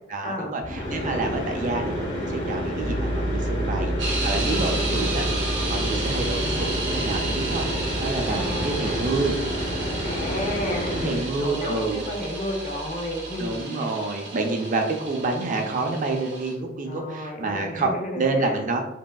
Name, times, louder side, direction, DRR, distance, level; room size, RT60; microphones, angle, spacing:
voice 1, 0.1-5.3 5.7-9.4 10.8-12.0 13.4-18.8, right 3 dB, 45° right, 3 dB, 0.4 m, -28 dB
sound 1, 0.6-11.3, equal, 85° left, 1.2 m, -29 dB
Piano, 2.8-13.6, right 1 dB, 70° left, 1.0 m, -32 dB
sound 2, 4.0-16.5, right 2 dB, 70° right, 0.7 m, -33 dB
voice 2, 4.4-5.1 8.3-9.0 10.0-13.9 16.8-18.6, left 1 dB, 45° left, 1 dB, 0.5 m, -32 dB
3.4 x 2.3 x 2.2 m, 0.94 s
head